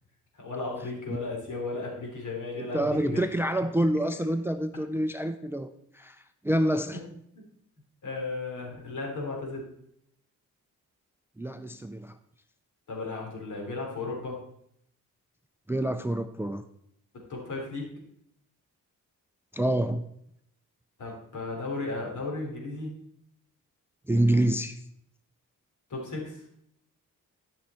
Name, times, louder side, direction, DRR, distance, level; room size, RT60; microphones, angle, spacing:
voice 1, 0.3-3.2 6.9-7.0 7.3-7.4 8.0-9.7 12.9-14.4 17.3-17.9 21.0-22.9 25.9-26.5, left 3 dB, 60° left, -1 dB, 3.4 m, -35 dB
voice 2, 2.6-6.2 6.4-7.0 11.4-12.2 15.7-16.6 19.5-20.0 24.1-24.8, right 1 dB, 5° right, 10 dB, 0.4 m, -27 dB
12.0 x 5.7 x 4.3 m, 0.72 s
cardioid pair, 95°, 33 cm